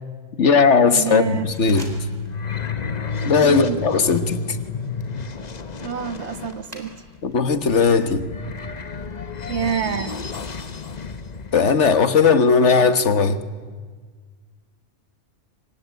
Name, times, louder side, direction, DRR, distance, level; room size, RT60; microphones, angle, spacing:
voice 1, 0.4-1.9 3.2-4.4 7.2-8.3 11.5-13.4, left 5 dB, 80° left, 11 dB, 1.7 m, -17 dB
voice 2, 0.9-1.5 3.4-3.8 5.8-6.9 9.5-10.2, right 7 dB, 70° right, 12 dB, 1.5 m, -26 dB
sound 1, 1.1-11.6, left 4 dB, 40° left, 1.1 m, -31 dB
sound 2, 1.5-2.4 2.7-3.1 3.6-7.3 7.7-9.2, right 1 dB, 35° right, 3.9 m, -47 dB
25.5 x 23.5 x 9.4 m, 1.5 s
omnidirectional pair, 1.2 m